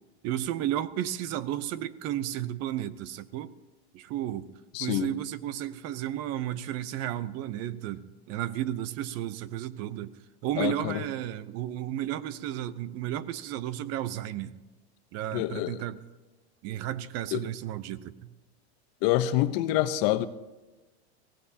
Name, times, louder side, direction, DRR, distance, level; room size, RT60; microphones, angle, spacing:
voice 1, 0.2-3.5 3.9-4.5 4.8-14.5 15.1-16.0 16.6-18.3, right 12 dB, 50° right, 15 dB, 0.8 m, -33 dB
voice 2, 4.7-5.1 10.6-11.0 15.3-15.8 17.3-17.4 19.0-20.3, left 14 dB, 60° left, 12 dB, 0.9 m, -26 dB
23.0 x 17.0 x 2.8 m, 1.2 s
supercardioid pair, 120°, 33 cm